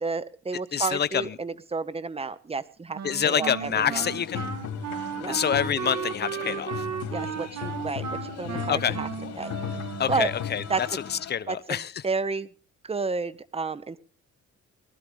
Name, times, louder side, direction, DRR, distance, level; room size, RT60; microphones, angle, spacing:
voice 1, 0.0-3.0 3.2-4.0 5.2-5.4 7.1-9.1 9.4-9.5 10.1-10.3 10.7-10.8 11.5-12.5 12.8-14.0, right 4 dB, 20° right, 0.8 m, -31 dB
voice 2, 0.7-1.4 3.0-4.4 5.3-6.9 8.7-9.0 10.0-11.9, left 8 dB, 35° left, 0.6 m, -27 dB
Wind instrument woodwind instrument, 2.9-10.4, right 7 dB, 60° right, 1.8 m, -35 dB
sound 1, 3.6-11.3, left 7 dB, 65° left, 2.4 m, -36 dB
19.5 x 12.5 x 3.5 m
cardioid pair, 90°, 30 cm